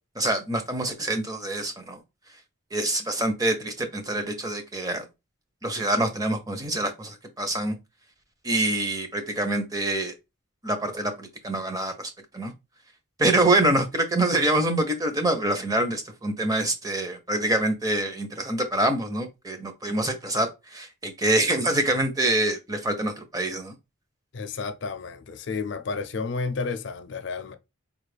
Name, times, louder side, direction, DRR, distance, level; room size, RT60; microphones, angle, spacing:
voice 1, 0.2-2.0 2.7-5.1 5.6-7.8 8.4-10.1 10.6-12.5 13.2-23.7, right 1 dB, 15° right, 0.6 m, -25 dB
voice 2, 24.3-27.5, left 4 dB, 55° left, 0.4 m, -31 dB
4.7 x 2.4 x 3.3 m
head